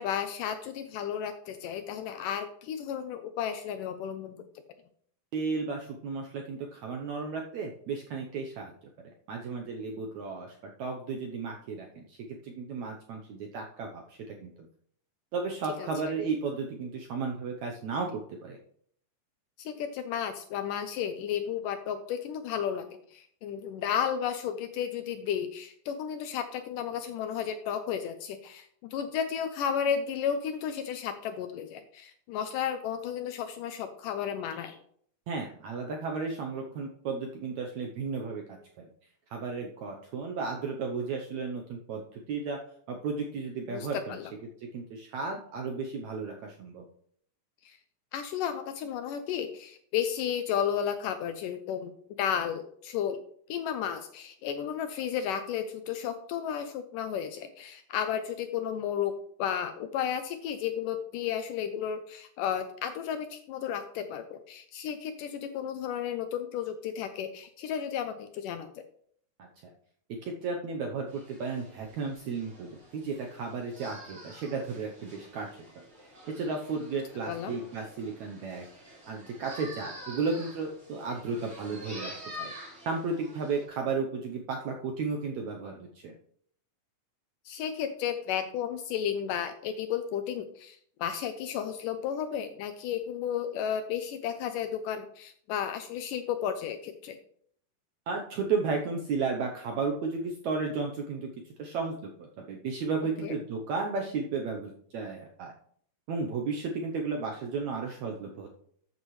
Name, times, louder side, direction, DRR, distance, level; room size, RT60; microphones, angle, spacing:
voice 1, 0.0-4.4 15.8-16.1 19.6-22.9 23.1-34.8 43.7-44.3 47.6-47.8 48.1-51.9 52.2-53.2 53.5-59.1 59.4-68.7 77.3-77.6 87.5-97.2 103.2-103.4, left 8 dB, 80° left, 8 dB, 2.0 m, -33 dB
voice 2, 5.3-8.7 9.0-12.2 12.4-14.5 15.3-18.6 35.3-38.9 39.3-42.6 42.9-44.2 44.6-46.8 69.4-69.7 70.2-75.5 76.4-78.6 79.1-82.1 82.4-82.5 82.9-86.2 98.1-105.5 106.1-108.5, right 4 dB, 75° right, 1 dB, 1.7 m, -34 dB
sound 1, 71.1-83.6, equal, 15° right, 4.4 m, -47 dB
13.5 x 8.3 x 3.2 m, 0.63 s
omnidirectional pair, 4.3 m